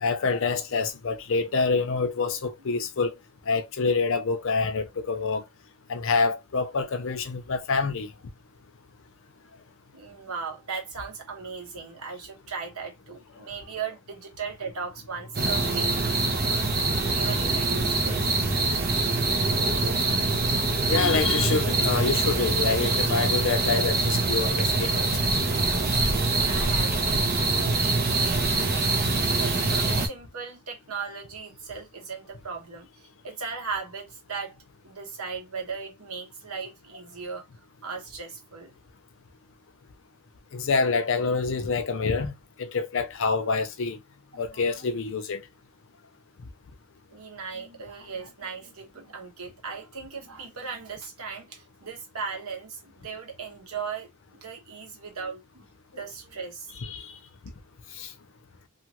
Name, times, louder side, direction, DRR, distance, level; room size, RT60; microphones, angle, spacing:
voice 1, 0.0-3.1 3.5-5.4 5.9-8.1 20.9-25.1 40.5-44.0 44.4-45.4 56.9-57.2 57.9-58.1, left 4 dB, 60° left, 0.5 m, -26 dB
voice 2, 9.9-15.9 16.5-16.7 17.0-18.4 26.4-28.4 29.3-34.6 34.8-37.4 37.8-38.7 44.3-44.9 47.1-56.7, right 5 dB, 75° right, 1.1 m, -37 dB
sound 1, 15.3-30.1, right 3 dB, 45° right, 0.9 m, -24 dB
2.7 x 2.4 x 2.9 m
head